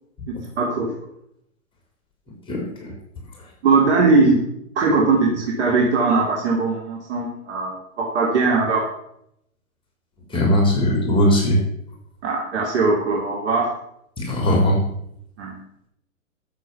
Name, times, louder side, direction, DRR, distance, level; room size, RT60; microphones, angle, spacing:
voice 1, 0.4-0.9 3.6-4.4 4.7-8.8 12.2-13.7 15.4-15.6, right 3 dB, 55° right, -2 dB, 3.1 m, -20 dB
voice 2, 2.5-2.9 10.3-11.6 14.2-14.8, equal, 15° left, 0 dB, 3.4 m, -19 dB
13.0 x 7.6 x 7.0 m, 0.75 s
figure-of-eight pair, 110°, 41 cm